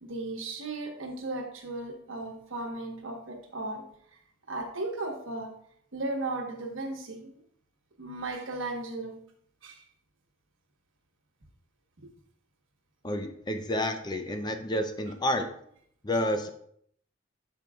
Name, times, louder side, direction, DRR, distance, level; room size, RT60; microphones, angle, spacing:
voice 1, 0.0-3.8 4.5-5.5 5.9-7.3 8.0-9.2 9.6-9.8 12.0-12.1, right 2 dB, 80° right, 2 dB, 1.2 m, -36 dB
voice 2, 13.0-15.5 16.0-16.5, left 1 dB, 20° left, 6 dB, 0.5 m, -29 dB
12.0 x 4.6 x 2.3 m, 0.67 s
head